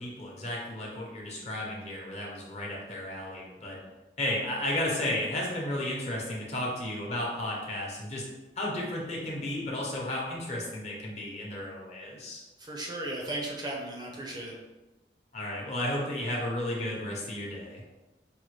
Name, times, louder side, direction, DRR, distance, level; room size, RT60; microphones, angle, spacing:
voice 1, 0.0-3.8 4.2-8.3 8.6-12.4 15.3-17.8, left 1 dB, 40° left, -3 dB, 0.9 m, -33 dB
voice 2, 12.6-14.5, right 1 dB, 25° right, -2 dB, 0.5 m, -36 dB
5.3 x 2.2 x 3.1 m, 1.1 s
head